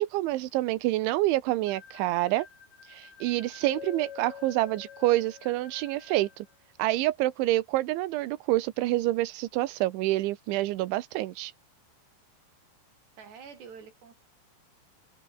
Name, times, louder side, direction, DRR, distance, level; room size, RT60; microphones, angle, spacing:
voice 1, 0.0-2.5 2.8-6.5 6.8-11.5, right 17 dB, 75° right, 3.2 m, -27 dB
sound 1, 1.7-6.5, left 6 dB, 65° left, 7.9 m, -53 dB
Keyboard (musical), 3.7-6.1, left 10 dB, 80° left, 1.5 m, -45 dB
voice 2, 13.2-14.2, right 6 dB, 55° right, 6.9 m, -47 dB
open air
omnidirectional pair, 5.9 m